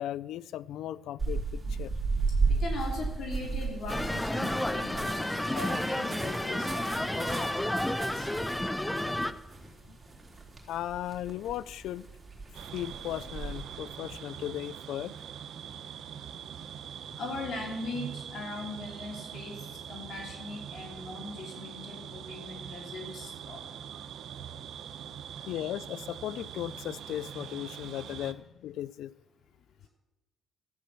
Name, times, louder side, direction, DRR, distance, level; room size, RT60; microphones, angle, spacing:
voice 1, 0.0-1.9 9.9-10.0 10.7-12.0 12.7-15.1 25.5-29.1, left 12 dB, 85° left, 20 dB, 0.4 m, -36 dB
sound 1, 1.2-13.6, right 4 dB, 25° right, 3.9 m, -35 dB
voice 2, 2.5-8.3 17.2-23.7 25.3-25.5, left 2 dB, 65° left, 1 dB, 3.0 m, -40 dB
sound 2, 3.9-9.3, left 1 dB, 10° left, 0.7 m, -31 dB
sound 3, 12.5-28.3, right 8 dB, 70° right, 0.8 m, -43 dB
13.5 x 8.7 x 7.4 m, 0.99 s
cardioid pair, 90°, 0 cm